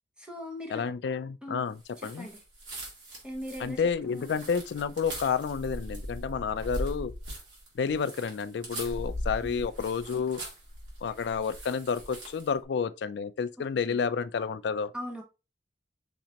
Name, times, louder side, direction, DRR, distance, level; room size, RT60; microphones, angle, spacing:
voice 1, 0.2-0.8 1.4-1.7 2.0-2.4 3.2-4.3 9.4-9.6 13.9-14.0 14.9-15.2, equal, 5° right, 1.0 m, -40 dB
voice 2, 0.7-2.3 3.6-7.1 7.7-10.4 11.0-14.9, left 6 dB, 75° left, 0.3 m, -30 dB
sound 1, 1.9-12.5, equal, 85° right, 2.3 m, -40 dB
6.1 x 2.8 x 2.8 m
head